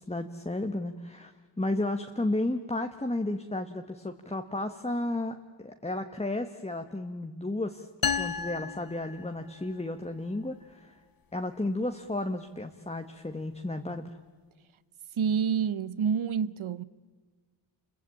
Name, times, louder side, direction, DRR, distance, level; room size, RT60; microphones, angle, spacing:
voice 1, 0.0-7.9 8.2-10.9 11.3-14.1, left 2 dB, 15° left, 1.2 m, -33 dB
sound 1, 8.0-9.8, left 6 dB, 45° left, 0.7 m, -33 dB
voice 2, 15.1-16.8, right 7 dB, 85° right, 0.9 m, -28 dB
29.0 x 22.5 x 8.8 m
wide cardioid pair, 110°, 47 cm